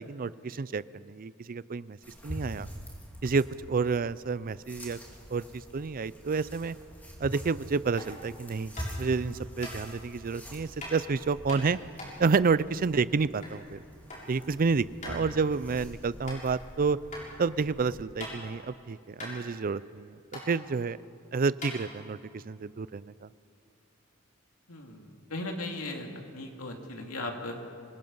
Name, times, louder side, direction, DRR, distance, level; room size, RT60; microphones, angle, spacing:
voice 1, 0.1-2.0 2.2-2.7 3.2-5.0 5.3-5.4 5.7-6.8 7.2-8.7 9.0-11.8 12.2-13.8 14.3-17.0 17.4-21.0 21.3-23.3, right 4 dB, 40° right, 18 dB, 0.4 m, -29 dB
sound 1, 2.0-18.0, equal, 10° left, 3.0 m, -45 dB
sound 2, 8.0-8.2 8.8-9.1 9.6-9.7 10.8-11.0 11.5-13.6 13.9-14.3 14.6-14.7 15.0-15.2 15.7-15.8 16.2-16.4 17.1-17.2 17.7-18.6 18.9-19.0 19.2-20.0 20.3-20.5 21.1-21.2 21.5-22.3, left 1 dB, 35° left, 6.7 m, -41 dB
voice 2, 24.7-27.6, left 2 dB, 85° left, 2 dB, 2.7 m, -38 dB
26.0 x 21.5 x 5.5 m, 2.4 s
head